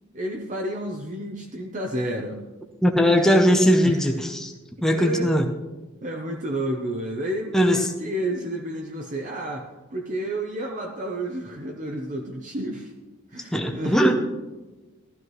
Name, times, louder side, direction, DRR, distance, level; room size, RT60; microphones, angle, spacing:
voice 1, 0.1-2.4 3.1-3.4 3.8-4.0 4.9-5.3 6.0-12.9 13.3-14.1, right 1 dB, 35° right, 2 dB, 0.8 m, -31 dB
voice 2, 2.8-4.5 4.8-5.5 7.5-7.9 13.5-14.1, equal, ahead, 2 dB, 0.7 m, -19 dB
15.0 x 12.5 x 3.1 m, 1.2 s
head